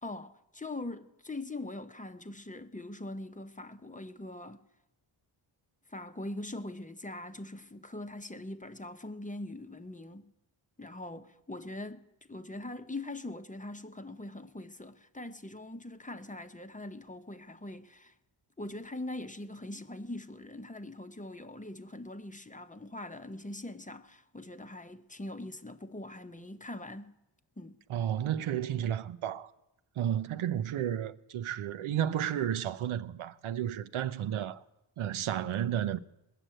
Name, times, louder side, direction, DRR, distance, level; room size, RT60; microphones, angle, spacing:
voice 1, 0.0-4.6 5.9-10.3 10.8-18.1 18.6-27.1 27.6-27.8, left 2 dB, 15° left, 0.8 m, -42 dB
voice 2, 27.9-29.5 30.0-34.6 35.0-36.0, right 10 dB, 80° right, 0.7 m, -32 dB
20.0 x 6.7 x 8.9 m
cardioid pair, 75°, 48 cm